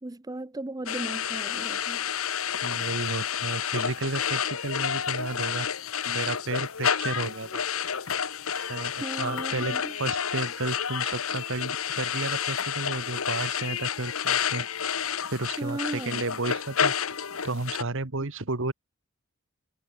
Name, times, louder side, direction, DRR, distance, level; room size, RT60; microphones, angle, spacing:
voice 1, 0.0-2.1 8.5-8.7 9.0-9.9 15.6-16.2, right 1 dB, 20° right, 0.7 m, -36 dB
sound 1, 0.9-17.8, left 8 dB, 80° left, 1.3 m, -30 dB
voice 2, 2.6-5.7 6.0-8.0 8.7-14.7 15.3-16.9 17.4-18.7, right 2 dB, 65° right, 1.7 m, -32 dB
head